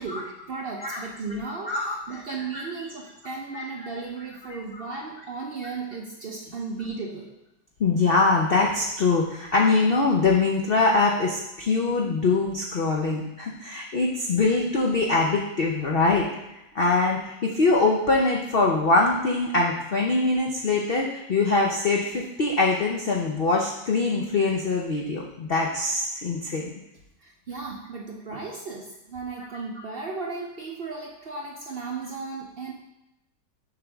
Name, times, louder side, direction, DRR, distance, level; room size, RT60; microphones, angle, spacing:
voice 1, 0.0-7.3 27.2-32.7, right 4 dB, 75° right, -1 dB, 0.5 m, -35 dB
voice 2, 1.7-2.2 2.5-2.7 3.5-3.6 4.5-4.9 7.8-16.3 16.7-26.7 29.4-29.5, left 3 dB, 85° left, -1 dB, 0.5 m, -23 dB
6.9 x 5.7 x 3.5 m, 0.89 s
omnidirectional pair, 1.9 m